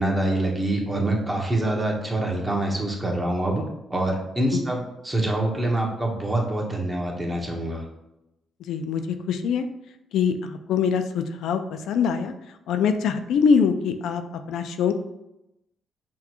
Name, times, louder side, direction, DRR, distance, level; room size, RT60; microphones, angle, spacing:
voice 1, 0.0-7.8, right 1 dB, 15° right, 0 dB, 1.0 m, -25 dB
voice 2, 8.6-9.6 10.1-12.3 12.7-14.2 14.5-14.9, left 6 dB, 80° left, 8 dB, 0.3 m, -23 dB
5.9 x 2.3 x 2.9 m, 0.89 s
cardioid pair, 90°, 0 cm